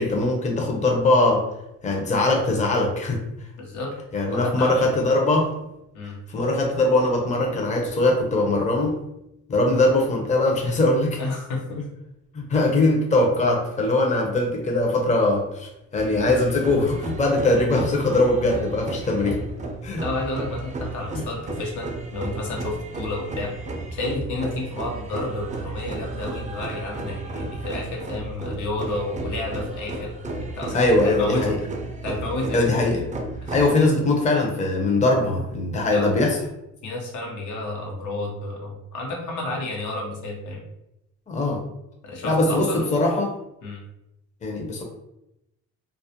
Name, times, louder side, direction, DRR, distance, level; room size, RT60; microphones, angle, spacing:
voice 1, 0.0-1.4 1.8-3.2 4.1-5.5 6.3-9.0 9.5-11.2 12.3-19.4 19.8-20.0 21.1-21.3 30.7-31.6 32.5-33.0 33.5-36.4 41.3-41.6 42.2-43.3 44.4-44.8, left 2 dB, 25° left, 1 dB, 0.6 m, -21 dB
voice 2, 3.6-3.9 4.3-5.0 5.9-6.2 11.2-11.8 20.0-23.5 23.9-31.6 32.0-33.0 33.4-33.7 35.8-36.2 36.8-40.6 42.0-42.8 43.6-43.8, left 2 dB, 75° left, -1 dB, 0.8 m, -31 dB
sound 1, 16.0-33.7, right 3 dB, 25° right, 0.4 m, -33 dB
2.3 x 2.0 x 2.8 m, 0.86 s
cardioid pair, 90°, 30 cm